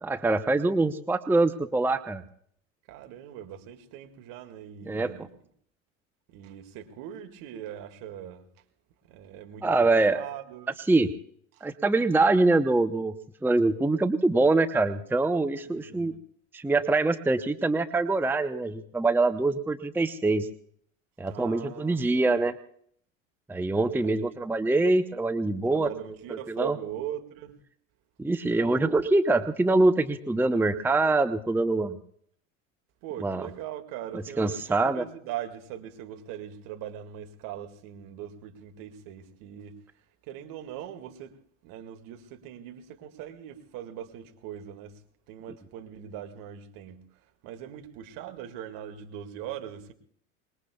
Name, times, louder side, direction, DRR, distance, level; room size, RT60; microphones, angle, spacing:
voice 1, 0.0-2.2 4.8-5.1 9.6-10.2 10.9-11.1 11.6-13.1 13.4-16.1 16.5-20.5 21.2-22.5 23.5-25.9 26.3-26.8 28.2-32.0 33.2-33.5 34.4-35.0, right 2 dB, 5° right, 0.8 m, -24 dB
voice 2, 2.9-5.3 6.3-8.5 9.1-10.7 11.5-11.7 15.6-16.2 21.2-22.4 24.0-24.4 25.7-27.6 33.0-39.8 40.2-41.4 41.6-45.0 45.3-47.1 47.4-49.9, right 10 dB, 50° right, 2.2 m, -41 dB
25.0 x 21.0 x 2.3 m
figure-of-eight pair, 80°, 40 cm